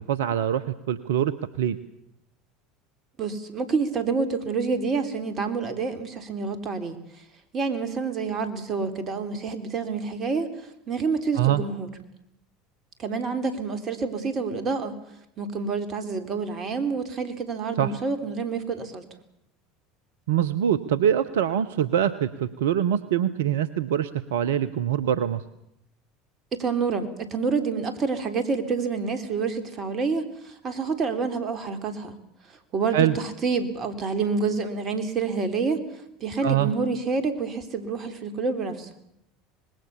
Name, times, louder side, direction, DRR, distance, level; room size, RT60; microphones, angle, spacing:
voice 1, 0.0-1.3 1.6-1.8 11.4-11.6 17.8-17.9 20.3-25.4 32.9-33.2 36.4-36.7, right 10 dB, 75° right, 16 dB, 0.9 m, -24 dB
voice 2, 3.2-7.0 7.5-10.5 10.9-11.9 13.0-15.0 15.4-19.0 26.5-32.2 32.7-35.8 36.2-38.9, right 4 dB, 40° right, 9 dB, 3.6 m, -28 dB
25.0 x 20.5 x 7.0 m, 0.78 s
hypercardioid pair, 75°, 0 cm